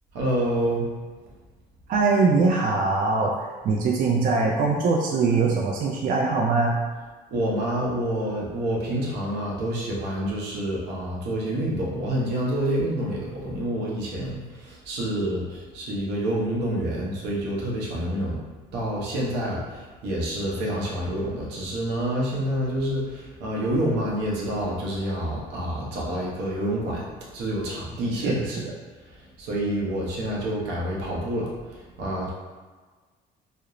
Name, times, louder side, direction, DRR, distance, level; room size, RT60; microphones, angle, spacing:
voice 1, 0.1-0.9 7.3-18.4 18.7-27.0 27.3-28.6 29.4-32.3, right 1 dB, 90° right, -4 dB, 0.7 m, -28 dB
voice 2, 1.9-6.8 28.2-28.4, right 4 dB, 55° right, -1 dB, 0.4 m, -22 dB
2.4 x 2.0 x 2.9 m, 1.4 s
cardioid pair, 110°, 17 cm